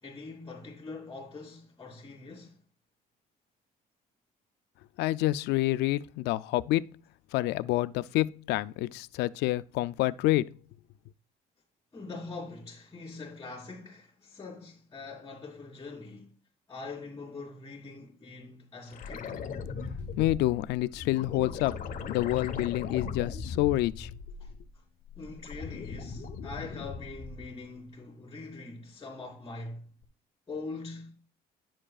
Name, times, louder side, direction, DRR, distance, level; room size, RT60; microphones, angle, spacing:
voice 1, 0.0-2.6 11.9-16.3 16.7-19.3 24.4-24.5 25.1-29.9 30.5-31.2, left 3 dB, 20° left, 3.1 m, -43 dB
voice 2, 5.0-6.9 7.3-10.5 20.2-21.8 22.1-24.1, left 16 dB, 85° left, 0.4 m, -28 dB
sound 1, 18.9-24.7 25.1-27.6 30.0-30.1, left 5 dB, 55° left, 1.1 m, -39 dB
11.0 x 7.5 x 2.4 m
cardioid pair, 110°, 17 cm